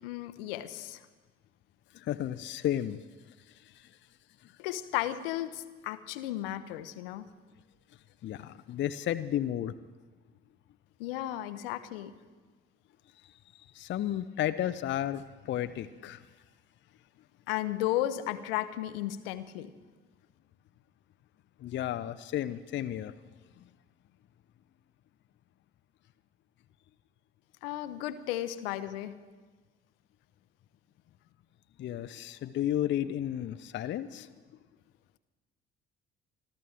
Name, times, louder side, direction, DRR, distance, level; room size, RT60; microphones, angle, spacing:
voice 1, 0.0-1.0 4.6-7.2 11.0-12.1 17.5-19.7 27.6-29.2, left 13 dB, 70° left, 12 dB, 0.8 m, -34 dB
voice 2, 1.9-3.0 3.7-3.9 4.4-4.5 8.2-9.7 13.7-16.2 21.6-23.1 31.8-34.3, left 12 dB, 40° left, 11 dB, 0.6 m, -33 dB
25.5 x 13.5 x 3.5 m, 1.4 s
figure-of-eight pair, 50°, 30 cm